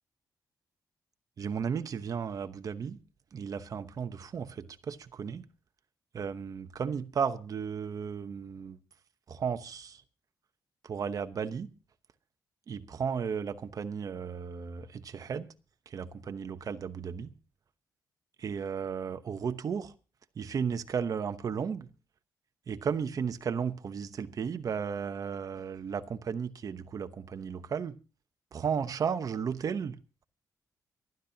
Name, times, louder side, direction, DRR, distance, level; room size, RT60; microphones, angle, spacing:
voice 1, 1.4-3.0 3.3-5.5 6.1-8.8 9.3-10.0 10.8-11.7 12.7-15.5 15.9-17.3 18.4-19.9 20.4-21.9 22.7-27.9 28.5-30.0, right 6 dB, 55° right, 1.0 m, -34 dB
25.0 x 12.0 x 2.8 m
cardioid pair, 90°, 7 cm